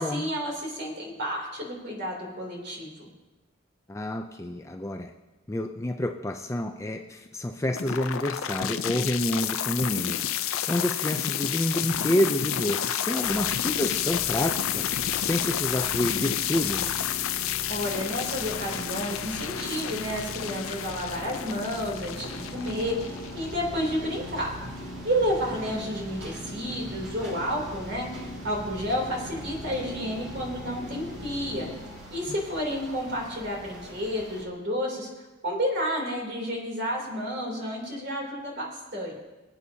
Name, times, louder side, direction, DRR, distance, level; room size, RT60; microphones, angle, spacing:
voice 1, 0.0-3.1 17.7-24.5 25.0-31.7 32.1-39.1, equal, 50° right, -1 dB, 3.1 m, -31 dB
voice 2, 3.9-5.1 5.5-10.2 10.7-14.9 15.2-16.9, left 1 dB, 15° left, 4 dB, 0.4 m, -28 dB
sound 1, 7.7-23.8, left 10 dB, 75° left, 0.6 m, -30 dB
sound 2, 13.2-31.8, equal, 35° left, 1.9 m, -41 dB
sound 3, 22.1-34.4, right 1 dB, 90° right, 5.0 m, -44 dB
23.5 x 8.4 x 2.8 m, 1.1 s
head